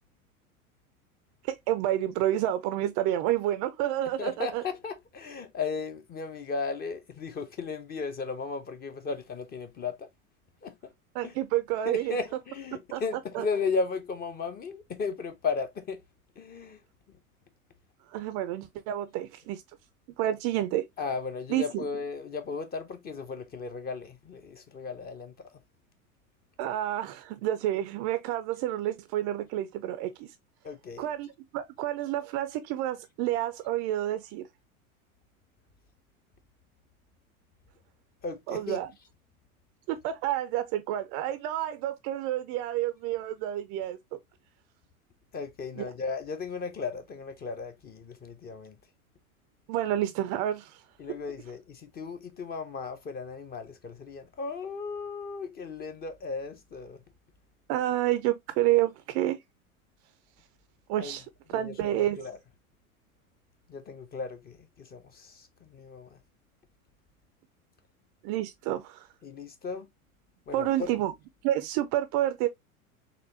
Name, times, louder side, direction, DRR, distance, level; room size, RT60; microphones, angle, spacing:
voice 1, 1.4-4.6 11.1-12.2 12.9-13.0 13.3-13.5 18.1-19.6 20.2-20.8 21.5-21.9 26.6-30.3 31.0-34.5 38.5-38.9 39.9-44.2 45.8-45.9 49.7-50.8 57.7-59.4 60.9-61.3 61.5-62.3 68.2-69.1 70.5-71.1 71.4-72.5, right 13 dB, 35° right, 0.4 m, -29 dB
voice 2, 4.2-10.1 10.6-10.7 11.2-11.3 11.9-16.0 16.4-16.8 21.0-25.3 30.6-31.1 38.2-38.8 45.3-48.8 51.0-57.0 61.0-61.2 61.5-62.4 63.7-66.2 69.2-69.9 70.5-70.9, left 4 dB, 20° left, 0.6 m, -35 dB
4.2 x 3.0 x 2.7 m
hypercardioid pair, 90°, 43 cm